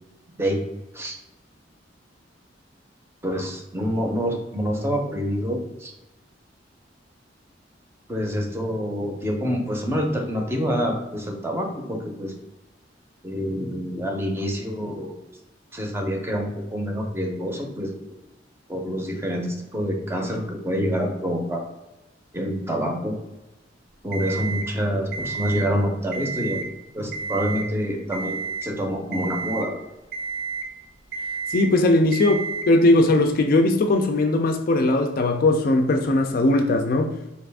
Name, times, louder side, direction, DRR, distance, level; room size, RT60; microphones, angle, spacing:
voice 1, 3.2-5.9 8.1-12.3 13.2-15.2 15.7-17.9 18.7-21.6 22.3-23.2 24.0-26.6 26.9-29.7, equal, 15° right, 0.6 m, -27 dB
Alarm, 24.1-24.7 25.1-25.7 26.1-26.7 27.1-27.7 28.1-28.7 29.1-29.7 30.1-30.7 31.1-31.7 32.1-32.7, right 5 dB, 60° right, 0.7 m, -31 dB
voice 2, 31.5-37.1, left 2 dB, 50° left, 0.4 m, -19 dB
4.0 x 2.5 x 3.4 m
head